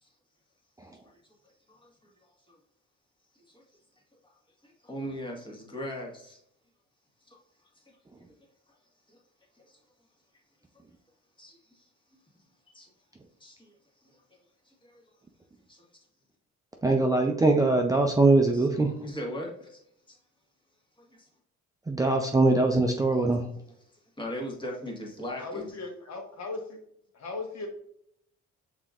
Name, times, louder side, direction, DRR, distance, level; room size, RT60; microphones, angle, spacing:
voice 1, 1.7-2.6 3.5-3.6 4.2-4.4 4.6-6.4 7.2-7.4 7.7-7.8 9.1-9.2 9.6-9.8 11.4-11.9 12.7-12.9 13.4-13.7 14.0-14.4 14.6-15.0 15.7-15.9 18.5-18.7 19.0-19.8 20.1-20.2 21.0-21.3 24.2-25.7, equal, 15° left, 0 dB, 1.4 m, -40 dB
voice 2, 16.8-18.9 21.9-23.5, right 2 dB, 10° right, 2 dB, 0.4 m, -22 dB
voice 3, 25.4-26.8 27.1-27.7, left 3 dB, 60° left, 1 dB, 1.2 m, -37 dB
5.6 x 3.8 x 2.4 m, 0.72 s
cardioid pair, 90°, 30 cm